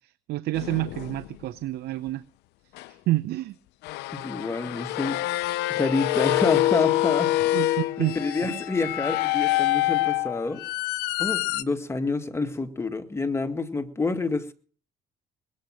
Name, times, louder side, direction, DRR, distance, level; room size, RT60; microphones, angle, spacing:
voice 1, 0.0-2.2 2.9-3.5 7.5-8.1 8.4-8.6, right 17 dB, 75° right, 0.7 m, -29 dB
sound 1, 0.5-1.3 2.8-2.9 3.8-11.6, left 17 dB, 90° left, 0.7 m, -26 dB
voice 2, 4.1-5.2 5.7-7.6 8.0-10.6 11.2-14.5, left 3 dB, 15° left, 1.9 m, -28 dB
21.0 x 8.6 x 6.4 m
cardioid pair, 110°, 17 cm